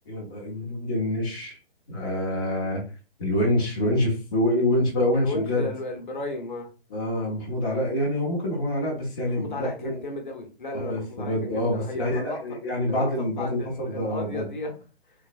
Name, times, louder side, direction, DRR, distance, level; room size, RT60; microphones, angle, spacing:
voice 1, 0.1-1.6 1.9-2.9 3.2-5.7 6.9-9.9 10.7-14.5, left 1 dB, 20° left, 0.7 m, -26 dB
voice 2, 5.1-6.7 9.2-12.4 12.9-14.7, left 2 dB, 50° left, 0.9 m, -34 dB
3.1 x 2.0 x 2.5 m
figure-of-eight pair, 140°, 32 cm